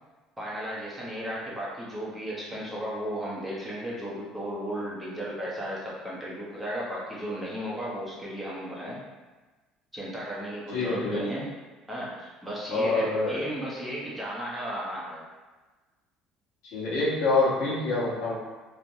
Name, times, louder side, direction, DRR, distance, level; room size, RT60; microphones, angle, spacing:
voice 1, 0.4-9.0 9.9-11.5 11.9-15.2, equal, 5° right, -7 dB, 0.8 m, -35 dB
voice 2, 10.7-11.3 12.7-13.4 16.6-18.3, left 3 dB, 85° left, -6 dB, 0.9 m, -26 dB
3.2 x 2.0 x 2.6 m, 1.3 s
cardioid pair, 120°, 0 cm